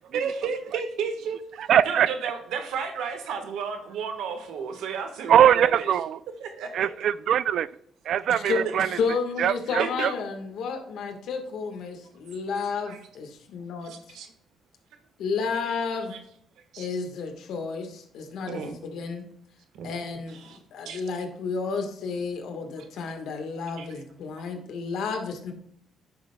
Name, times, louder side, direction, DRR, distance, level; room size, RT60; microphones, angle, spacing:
voice 1, 0.1-5.9 6.4-6.9 9.8-9.9 12.9-13.0 13.8-14.3 16.1-16.2 16.7-16.9 18.5-18.8 19.7-19.9 20.3-20.6 20.8-21.0 23.8-24.0 24.4-24.5, right 6 dB, 85° right, 6 dB, 1.3 m, -33 dB
voice 2, 1.7-2.1 5.3-6.2 6.7-7.7 8.1-8.9 9.4-10.1, right 10 dB, 70° right, 17 dB, 0.3 m, -21 dB
voice 3, 8.4-14.2 15.2-16.2 16.8-19.2 19.8-25.5, left 5 dB, 80° left, 5 dB, 1.4 m, -32 dB
10.0 x 7.1 x 2.2 m, 0.73 s
cardioid pair, 90°, 0 cm